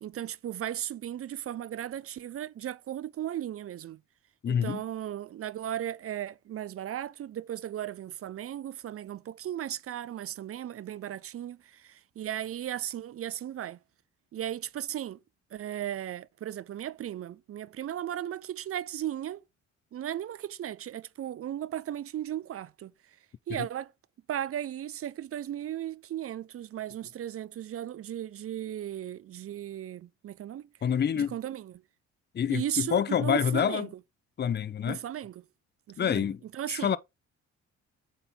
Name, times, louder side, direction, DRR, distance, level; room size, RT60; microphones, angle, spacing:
voice 1, 0.0-4.0 4.5-13.8 14.3-15.2 15.5-19.4 19.9-22.9 23.5-23.9 24.3-30.7 31.2-31.8 32.5-33.9 34.9-35.5 35.9-37.0, right 11 dB, 50° right, 0.5 m, -36 dB
voice 2, 4.4-4.8 30.8-31.3 32.3-33.9 34.4-35.0 36.0-36.4 36.7-37.0, left 8 dB, 35° left, 0.6 m, -27 dB
7.8 x 4.3 x 3.7 m
cardioid pair, 90°, 30 cm